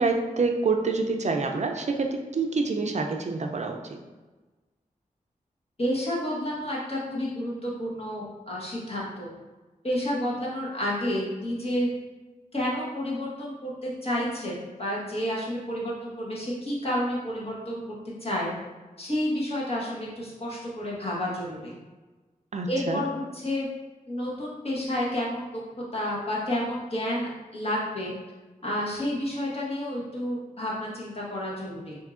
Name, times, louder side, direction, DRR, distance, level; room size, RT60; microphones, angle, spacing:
voice 1, 0.0-3.8 22.5-23.0, right 4 dB, 50° right, 3 dB, 0.4 m, -27 dB
voice 2, 5.8-9.3 9.8-11.9 12.5-17.8 18.2-18.5 19.0-21.7 22.7-23.7 24.1-28.1 28.6-32.0, left 1 dB, 45° left, -5 dB, 1.2 m, -30 dB
4.5 x 2.7 x 2.4 m, 1.2 s
cardioid pair, 60°, 15 cm